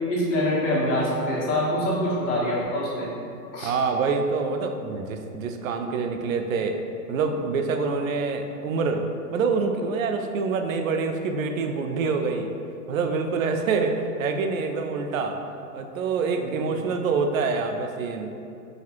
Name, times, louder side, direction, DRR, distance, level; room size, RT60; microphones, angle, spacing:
voice 1, 0.1-3.1 3.5-3.7 16.4-16.5, left 1 dB, 50° left, -6 dB, 1.2 m, -25 dB
voice 2, 3.6-6.8 7.1-9.1 9.3-12.5 12.9-15.4 15.7-18.3, right 4 dB, 60° right, 5 dB, 0.5 m, -26 dB
4.9 x 2.4 x 2.9 m, 2.6 s
hypercardioid pair, 135°, 48 cm